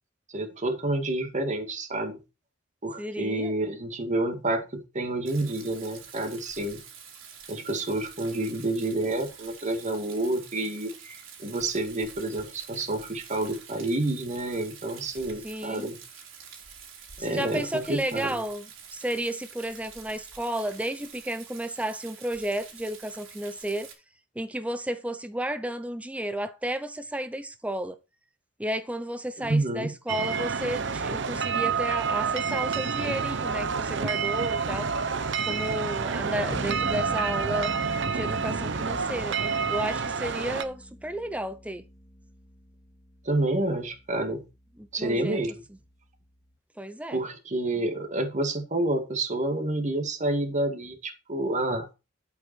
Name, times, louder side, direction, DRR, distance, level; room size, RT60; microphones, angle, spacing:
voice 1, 0.3-2.2 2.8-6.8 7.5-16.0 17.2-18.4 29.4-29.9 43.2-44.5 44.9-45.6 47.1-51.9, right 2 dB, 40° right, 2.2 m, -29 dB
voice 2, 3.0-3.5 15.4-15.9 17.2-18.7 18.9-23.9 24.4-28.0 28.6-34.9 35.4-37.7 38.1-41.8 44.8-45.4 46.8-47.2, right 1 dB, 5° right, 0.7 m, -32 dB
Rain, 5.3-23.9, right 7 dB, 85° right, 4.0 m, -47 dB
sound 1, 30.1-40.6, right 5 dB, 65° right, 0.9 m, -28 dB
sound 2, 36.5-46.5, left 1 dB, 20° left, 1.3 m, -44 dB
11.5 x 8.6 x 4.6 m
head